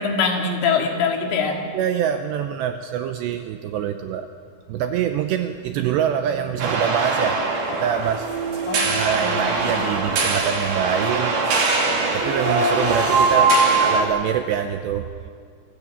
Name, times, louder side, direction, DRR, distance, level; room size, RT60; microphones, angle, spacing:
voice 1, 0.0-1.7 8.6-9.8 13.3-13.8, left 5 dB, 75° left, 2 dB, 4.9 m, -24 dB
voice 2, 1.7-4.3 4.7-7.4 7.7-8.3 8.8-11.3 12.1-15.1, right 9 dB, 85° right, 7 dB, 2.5 m, -25 dB
sound 1, 6.6-14.0, right 3 dB, 55° right, 4.3 m, -21 dB
27.0 x 18.0 x 8.6 m, 2.2 s
omnidirectional pair, 5.8 m